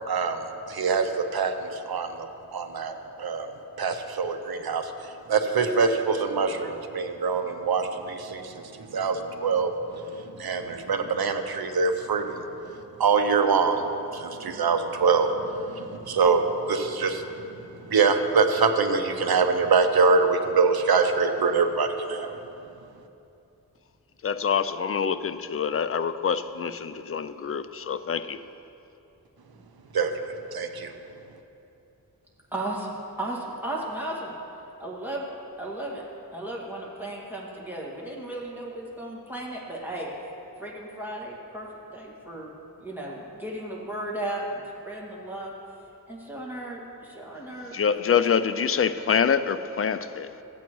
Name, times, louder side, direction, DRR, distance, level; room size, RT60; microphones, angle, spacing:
voice 1, 0.1-3.5 3.8-4.9 5.3-9.7 10.4-12.4 13.0-13.8 14.1-17.2 17.9-22.4 29.9-30.1 30.5-30.9, right 4 dB, 80° right, 0.7 m, -24 dB
voice 2, 24.2-28.4 47.7-50.3, left 7 dB, 40° left, 0.4 m, -26 dB
voice 3, 32.5-34.4 34.8-35.3 35.6-36.0 36.3-40.1 40.6-41.7 41.9-42.5 42.8-45.5 46.1-47.8, right 1 dB, 5° right, 2.0 m, -35 dB
15.5 x 8.4 x 3.1 m
wide cardioid pair, 90°, 37 cm